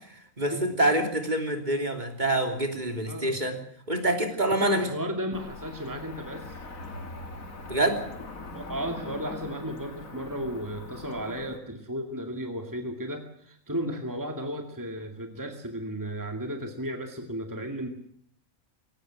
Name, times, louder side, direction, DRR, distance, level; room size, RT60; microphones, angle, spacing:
voice 1, 0.1-3.6 3.9-4.9 7.7-8.0, right 1 dB, 35° right, 4 dB, 3.3 m, -26 dB
voice 2, 3.1-3.4 4.6-6.6 8.5-17.9, equal, 15° right, 4 dB, 2.3 m, -34 dB
Cricket / Motor vehicle (road), 5.3-11.6, left 3 dB, 85° left, 3.1 m, -42 dB
22.0 x 18.0 x 7.7 m, 0.64 s
omnidirectional pair, 1.4 m